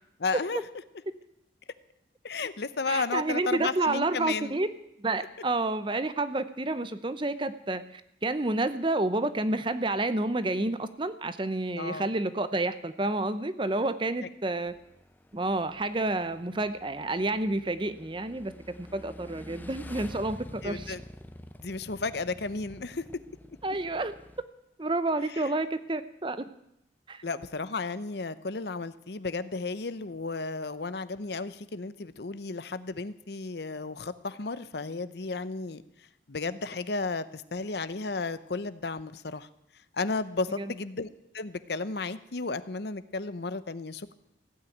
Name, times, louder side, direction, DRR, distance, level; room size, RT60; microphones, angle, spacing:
voice 1, 0.2-0.6 2.2-4.6 11.7-12.0 20.6-21.0 21.6-23.0 27.2-35.8 36.3-39.5 39.9-41.1 41.3-44.1, left 3 dB, 65° left, 14 dB, 0.8 m, -33 dB
voice 2, 2.9-4.7 5.0-14.7 15.3-18.5 18.8-21.0 23.6-24.1 24.8-26.5 27.1-27.2 40.6-40.7, right 2 dB, 25° right, 13 dB, 0.7 m, -29 dB
Motorcycle / Engine, 14.7-24.4, left 1 dB, 10° left, 0.7 m, -48 dB
16.0 x 8.9 x 9.2 m, 0.79 s
head